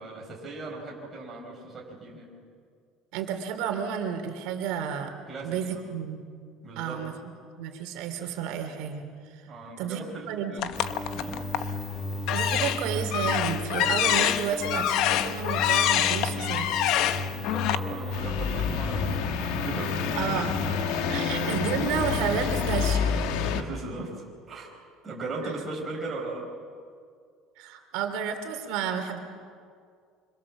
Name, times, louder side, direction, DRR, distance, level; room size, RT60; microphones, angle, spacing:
voice 1, 0.0-2.3 5.3-5.9 6.6-7.3 9.5-10.6 11.1-11.4 17.1-20.0 21.0-21.1 23.4-26.5, right 3 dB, 15° right, -2 dB, 4.9 m, -38 dB
voice 2, 3.1-5.1 5.4-6.2 6.8-7.1 7.6-9.5 9.8-10.7 12.3-16.7 20.2-23.2 27.6-29.2, right 7 dB, 70° right, 5 dB, 3.1 m, -31 dB
sound 1, 10.6-11.7 12.2-17.8, left 11 dB, 55° left, 1.0 m, -26 dB
sound 2, 10.7-23.0, left 2 dB, 5° left, 2.1 m, -35 dB
sound 3, 18.1-23.6, left 6 dB, 70° left, 1.7 m, -28 dB
26.0 x 25.5 x 7.4 m, 2.2 s
cardioid pair, 170°, 0 cm